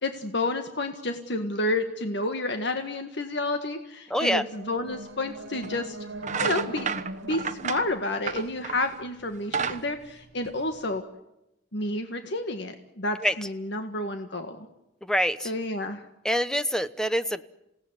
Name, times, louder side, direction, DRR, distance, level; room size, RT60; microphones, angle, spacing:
voice 1, 0.0-6.0 6.4-6.9 7.3-11.0 11.7-14.7 15.4-16.0, left 2 dB, 65° left, 6 dB, 1.8 m, -30 dB
voice 2, 4.1-4.4 13.2-13.3 15.0-15.5 16.2-17.5, equal, 5° left, 12 dB, 0.9 m, -25 dB
sound 1, 4.1-9.2, right 2 dB, 85° right, 1.9 m, -42 dB
sound 2, 4.9-5.0 5.6-5.8 6.2-8.9 9.3-11.0, right 6 dB, 40° right, 1.2 m, -31 dB
28.0 x 17.5 x 9.8 m, 0.89 s
head